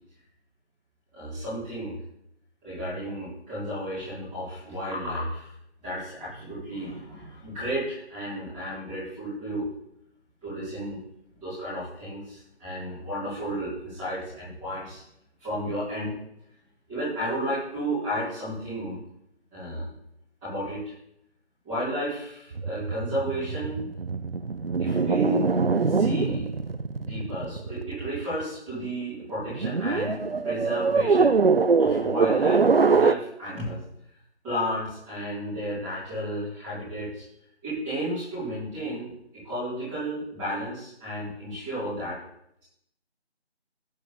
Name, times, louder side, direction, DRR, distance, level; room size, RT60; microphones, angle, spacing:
voice 1, 1.1-1.9 2.6-5.5 5.8-9.6 10.4-11.0 11.4-15.0 15.4-16.1 16.9-19.0 19.5-19.9 20.4-20.8 21.6-23.8 24.8-25.4 25.8-26.5 27.0-31.4 31.8-33.8 34.4-37.2 37.6-39.1 39.4-42.2, equal, 5° right, -15 dB, 3.1 m, -32 dB
sound 1, 22.5-28.4 29.4-33.1, right 4 dB, 60° right, 0.5 m, -23 dB
11.5 x 4.8 x 6.9 m, 0.77 s
figure-of-eight pair, 170°, 34 cm